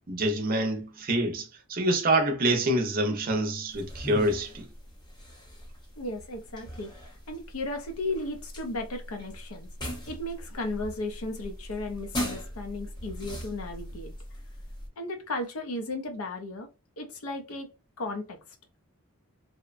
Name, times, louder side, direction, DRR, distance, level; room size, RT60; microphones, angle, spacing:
voice 1, 0.1-4.7, right 1 dB, 40° right, 0.6 m, -26 dB
sound 1, 3.7-14.9, equal, 20° left, 0.6 m, -40 dB
voice 2, 6.0-6.9 7.3-9.7 10.1-14.1 15.0-16.7 17.0-17.7 18.0-18.4, left 2 dB, 70° left, 0.5 m, -35 dB
2.8 x 2.1 x 2.4 m
head